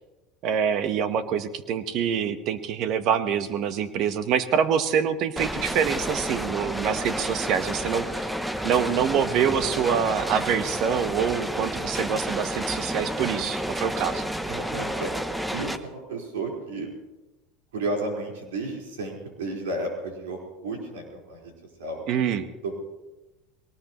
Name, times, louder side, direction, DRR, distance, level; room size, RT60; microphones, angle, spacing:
voice 1, 0.4-8.3 8.6-14.3 22.1-22.5, right 7 dB, 55° right, 11 dB, 1.2 m, -25 dB
sound 1, 5.4-15.8, equal, 5° right, 0.9 m, -30 dB
voice 2, 14.5-15.1 15.5-16.9 17.7-21.5 21.8-22.0 22.6-22.8, right 2 dB, 90° right, -1 dB, 4.6 m, -32 dB
21.0 x 18.5 x 3.1 m, 1.1 s
supercardioid pair, 105°, 0 cm